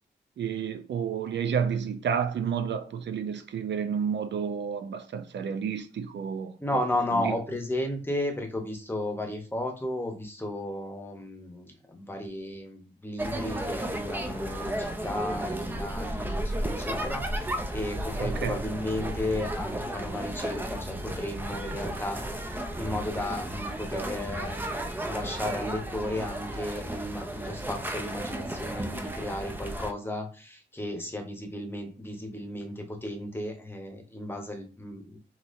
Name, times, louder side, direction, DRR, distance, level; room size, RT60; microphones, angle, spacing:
voice 1, 0.4-6.8 7.1-7.4 18.2-18.6, right 7 dB, 80° right, 0.5 m, -30 dB
voice 2, 6.6-24.6 25.0-35.2, left 1 dB, 10° left, 0.8 m, -34 dB
sound 1, 13.2-29.9, right 1 dB, 10° right, 0.4 m, -34 dB
4.0 x 2.8 x 2.5 m
wide cardioid pair, 100°, 18 cm